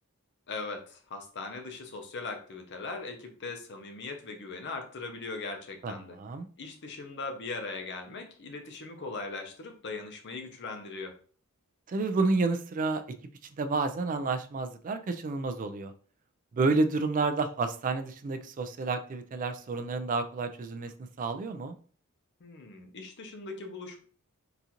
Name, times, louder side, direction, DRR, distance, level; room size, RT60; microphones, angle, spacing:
voice 1, 0.5-6.2 6.6-11.1 22.4-24.0, left 3 dB, 55° left, 5 dB, 0.7 m, -39 dB
voice 2, 5.8-6.5 11.9-13.0 13.6-15.9 16.5-20.9 21.2-21.8, right 3 dB, 40° right, 9 dB, 0.4 m, -30 dB
3.9 x 2.4 x 2.9 m, 0.43 s
head